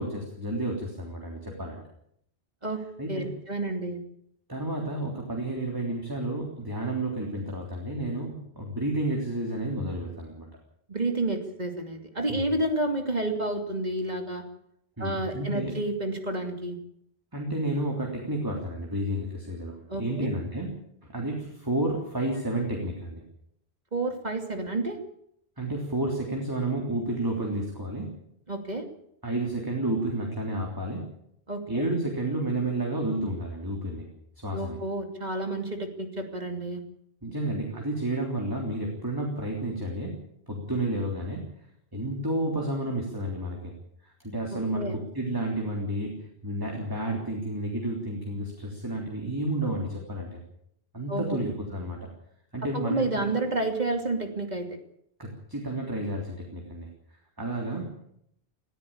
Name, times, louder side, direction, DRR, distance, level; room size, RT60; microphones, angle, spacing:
voice 1, 0.0-1.8 3.0-3.3 4.5-10.5 12.3-12.4 15.0-15.7 17.3-20.8 21.1-23.2 25.6-28.1 29.2-31.0 31.7-34.1 34.4-34.8 37.2-40.2 40.5-41.5 41.9-43.7 44.0-50.4 50.9-52.0 52.5-53.3 55.2-56.9 57.4-57.9, right 1 dB, 20° right, 0 dB, 3.5 m, -31 dB
voice 2, 3.1-4.0 10.9-14.4 15.0-16.8 19.9-20.3 23.9-25.0 28.5-28.8 31.5-31.8 34.5-36.8 44.7-45.0 51.1-51.4 52.7-54.7, right 2 dB, 45° right, 4 dB, 2.8 m, -30 dB
20.5 x 14.0 x 8.8 m, 0.73 s
omnidirectional pair, 1.0 m